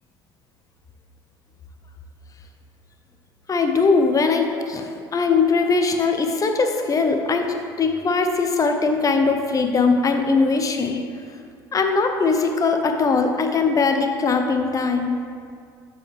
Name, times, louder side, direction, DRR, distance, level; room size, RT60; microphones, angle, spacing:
voice 1, 3.5-11.0 11.7-15.2, left 4 dB, 30° left, 5 dB, 0.7 m, -20 dB
6.8 x 5.1 x 3.4 m, 2.2 s
hypercardioid pair, 70°, 12 cm